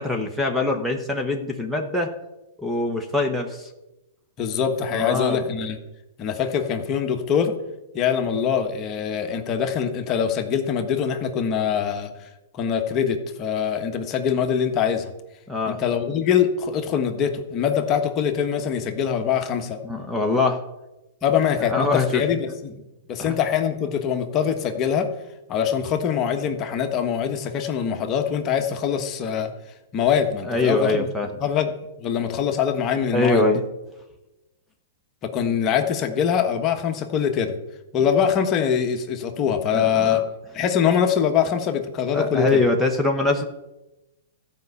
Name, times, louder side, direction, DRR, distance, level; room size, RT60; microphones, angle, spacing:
voice 1, 0.0-2.1 2.6-3.7 4.9-5.4 15.5-15.8 19.8-20.6 21.7-22.2 23.2-23.4 30.4-31.3 33.1-33.6 39.7-40.2 42.1-43.4, left 2 dB, ahead, 3 dB, 1.2 m, -23 dB
voice 2, 4.4-5.8 6.2-7.5 7.9-12.1 12.5-15.1 15.7-19.8 21.2-22.8 23.1-25.1 25.5-29.5 29.9-31.1 31.4-31.7 32.0-33.4 35.2-37.5 37.9-40.2 40.5-42.6, left 8 dB, 30° left, 5 dB, 1.3 m, -23 dB
13.5 x 5.4 x 8.2 m, 0.99 s
hypercardioid pair, 130°, 0 cm